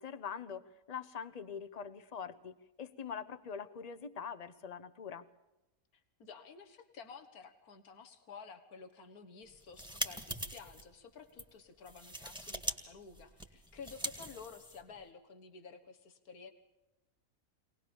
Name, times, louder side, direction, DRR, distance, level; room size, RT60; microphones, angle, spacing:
voice 1, 0.0-5.2, left 6 dB, 30° left, 15 dB, 0.9 m, -44 dB
voice 2, 5.9-16.5, left 5 dB, 90° left, 6 dB, 1.9 m, -52 dB
sound 1, 9.5-10.8 11.3-11.5 11.9-12.8 13.0-15.0, right 1 dB, 5° right, 1.9 m, -41 dB
24.0 x 19.0 x 7.1 m, 0.99 s
omnidirectional pair, 1.5 m